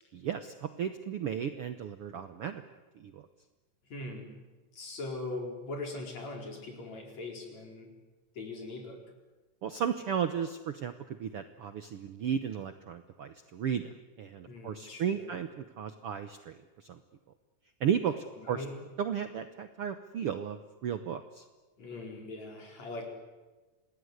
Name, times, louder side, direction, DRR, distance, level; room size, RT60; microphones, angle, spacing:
voice 1, 0.1-2.6 3.0-3.3 9.6-10.9 11.2-13.9 14.2-17.0 17.8-18.6 19.0-21.4, right 8 dB, 70° right, 9 dB, 1.4 m, -34 dB
voice 2, 3.9-4.4 4.7-7.9 8.4-9.0 14.5-15.3 18.1-18.8 21.8-23.1, left 2 dB, 55° left, 2 dB, 5.7 m, -41 dB
27.0 x 20.0 x 9.7 m, 1.2 s
omnidirectional pair, 3.9 m